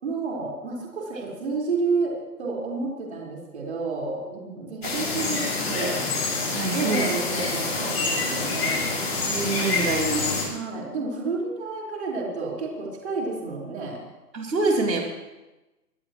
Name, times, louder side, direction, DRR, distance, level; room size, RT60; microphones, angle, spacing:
voice 1, 0.0-6.0 6.7-8.8 10.4-14.0, right 3 dB, 40° right, -4 dB, 4.6 m, -30 dB
sound 1, 4.8-10.4, left 3 dB, 40° left, 6.5 m, -27 dB
voice 2, 5.6-6.0 6.5-7.1 9.2-10.3 14.3-15.0, right 3 dB, 80° right, -1 dB, 3.8 m, -26 dB
24.0 x 17.5 x 3.1 m, 1.1 s
hypercardioid pair, 180°, 49 cm